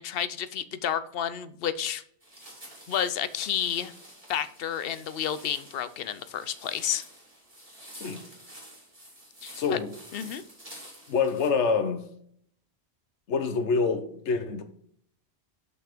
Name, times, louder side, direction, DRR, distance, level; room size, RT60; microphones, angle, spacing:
voice 1, 0.0-2.0 2.9-3.9 4.3-7.0 9.4-9.8 10.1-10.4, left 9 dB, 65° left, 0.7 m, -31 dB
sound 1, 2.2-11.5, right 1 dB, 30° right, 3.2 m, -49 dB
voice 2, 9.5-9.9 11.1-12.0 13.3-14.6, left 5 dB, 85° left, 1.2 m, -26 dB
6.0 x 5.6 x 5.0 m
omnidirectional pair, 1.1 m